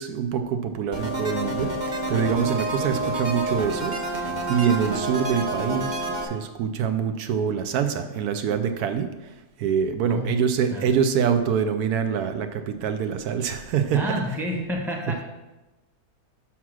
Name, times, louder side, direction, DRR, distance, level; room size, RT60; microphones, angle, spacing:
voice 1, 0.0-9.1 9.6-14.3, right 7 dB, 80° right, 8 dB, 1.1 m, -25 dB
sound 1, 0.9-6.2, right 2 dB, 30° right, 1.2 m, -28 dB
voice 2, 13.9-15.2, left 1 dB, ahead, 0 dB, 0.9 m, -29 dB
5.8 x 5.8 x 6.2 m, 1.0 s
omnidirectional pair, 1.6 m